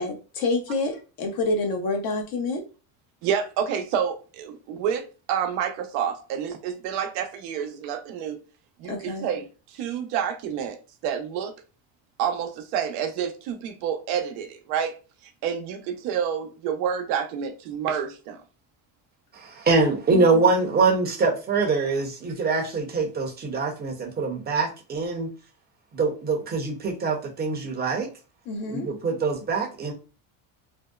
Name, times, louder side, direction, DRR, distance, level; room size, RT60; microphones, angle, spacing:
voice 1, 0.0-2.6 8.8-9.3 20.1-20.6 28.5-28.9, left 3 dB, 50° left, 0.7 m, -28 dB
voice 2, 3.2-8.4 8.8-10.8 11.0-11.5 12.2-14.9 15.4-18.4, right 8 dB, 90° right, 0.7 m, -28 dB
voice 3, 19.3-25.3 25.9-28.1 28.7-29.9, right 4 dB, 20° right, 0.6 m, -24 dB
2.6 x 2.1 x 2.2 m
cardioid pair, 125°, 45 cm